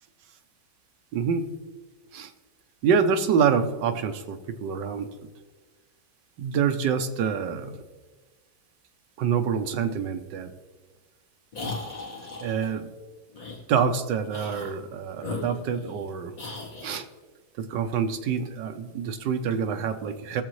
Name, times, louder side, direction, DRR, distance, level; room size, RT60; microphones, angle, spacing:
voice 1, 1.1-1.6 2.1-2.3 2.8-5.1 6.4-7.8 9.2-10.5 12.4-12.9 13.7-16.3 16.8-17.0 17.6-20.4, right 6 dB, 70° right, 7 dB, 1.3 m, -26 dB
sound 1, 11.5-12.7 13.3-13.6 14.3-14.8 15.2-16.0 16.4-17.0, left 3 dB, 45° left, 2.0 m, -37 dB
18.5 x 7.2 x 3.2 m, 1.3 s
omnidirectional pair, 2.2 m